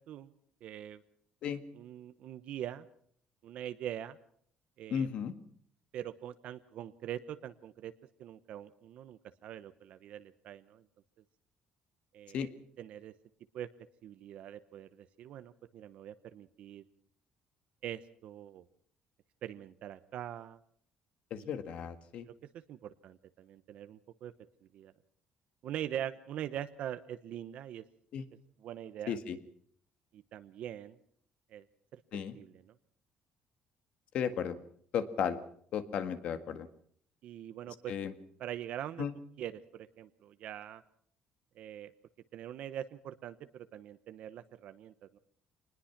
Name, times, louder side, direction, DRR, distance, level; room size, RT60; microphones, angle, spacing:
voice 1, 0.6-1.0 1.7-2.9 3.4-4.2 4.8-5.1 5.9-7.9 8.2-10.8 12.1-12.5 12.8-13.1 13.5-13.7 14.0-16.8 17.8-18.7 19.4-20.6 21.4-21.5 22.7-24.3 24.7-24.9 25.6-27.8 28.6-29.2 30.1-31.0 31.5-31.6 32.3-32.7 37.2-37.9 38.4-39.0 39.4-40.8 41.6-41.9 42.3-45.2, right 11 dB, 55° right, 11 dB, 0.9 m, -43 dB
voice 2, 4.9-5.3 12.3-12.5 21.3-22.3 28.1-28.2 29.1-29.4 32.1-32.4 34.1-34.6 34.9-35.4 35.7-36.7 37.9-38.1 39.0-39.1, left 8 dB, 55° left, 11 dB, 1.8 m, -34 dB
25.5 x 20.5 x 5.9 m, 0.62 s
cardioid pair, 175°, 2 cm